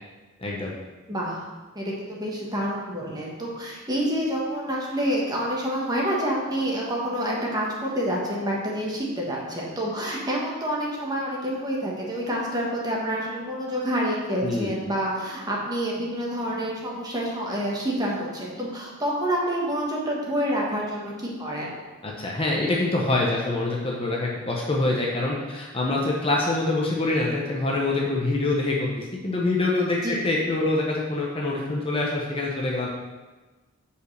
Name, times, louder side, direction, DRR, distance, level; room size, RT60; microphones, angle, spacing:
voice 1, 0.4-0.7 14.4-14.7 22.0-32.9, left 2 dB, 25° left, -2 dB, 0.9 m, -25 dB
voice 2, 1.1-1.4 1.7-21.8 30.0-30.2, equal, 20° right, -3 dB, 1.4 m, -28 dB
5.2 x 5.1 x 6.5 m, 1.2 s
head